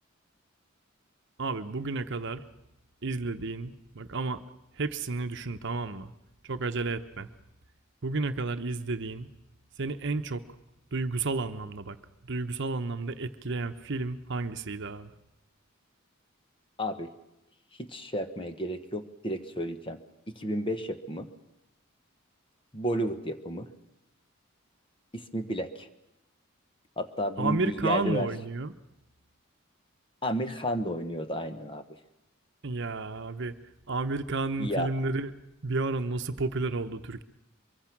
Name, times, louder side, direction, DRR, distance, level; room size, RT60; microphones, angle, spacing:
voice 1, 1.4-2.5 3.0-4.4 4.8-6.1 6.4-7.3 8.0-9.3 9.8-10.4 10.9-12.0 12.2-15.1 27.4-28.8 32.6-33.6 33.9-35.3 35.6-37.2, right 3 dB, 55° right, 9 dB, 0.9 m, -31 dB
voice 2, 16.8-17.1 17.8-20.0 20.3-21.3 22.7-23.7 25.1-25.9 27.0-28.3 30.2-31.8 34.6-34.9, equal, 25° left, 9 dB, 1.2 m, -32 dB
23.5 x 23.5 x 6.0 m, 0.90 s
head